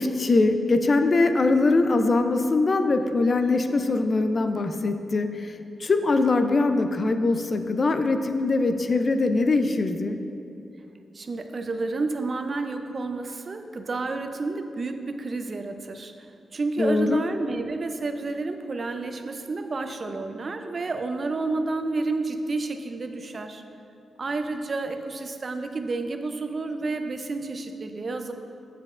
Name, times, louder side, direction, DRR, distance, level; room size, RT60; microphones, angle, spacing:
voice 1, 0.0-10.2 16.8-17.2, left 3 dB, 45° left, 8 dB, 0.4 m, -22 dB
voice 2, 11.1-16.1 16.5-23.6 24.2-28.3, right 3 dB, 45° right, 6 dB, 0.5 m, -30 dB
7.5 x 7.4 x 2.5 m, 2.7 s
cardioid pair, 90°, 0 cm